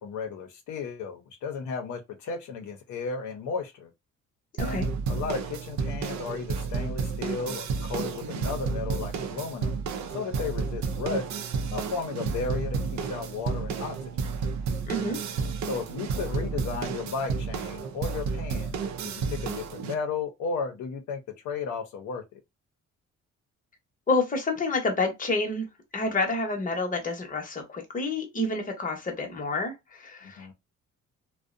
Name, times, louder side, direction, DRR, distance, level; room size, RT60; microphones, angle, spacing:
voice 1, 0.0-3.9 4.6-9.8 10.1-11.2 11.7-14.0 15.7-21.2 21.4-22.2 30.2-30.5, left 5 dB, 75° left, 0.7 m, -34 dB
voice 2, 4.6-4.9 14.9-15.2 24.1-25.7 25.9-30.5, left 2 dB, 25° left, 0.9 m, -29 dB
sound 1, 4.6-19.9, right 5 dB, 65° right, 0.5 m, -31 dB
2.5 x 2.1 x 2.5 m
cardioid pair, 90°, 30 cm